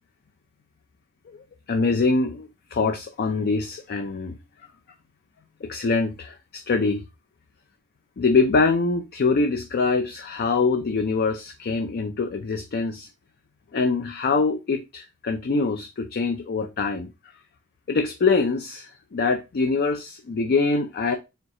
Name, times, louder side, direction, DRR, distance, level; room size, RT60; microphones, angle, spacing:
voice 1, 1.3-4.4 5.6-7.0 8.2-13.1 13.7-17.1 17.9-21.2, left 4 dB, 50° left, 0.4 m, -24 dB
4.4 x 2.3 x 3.7 m
head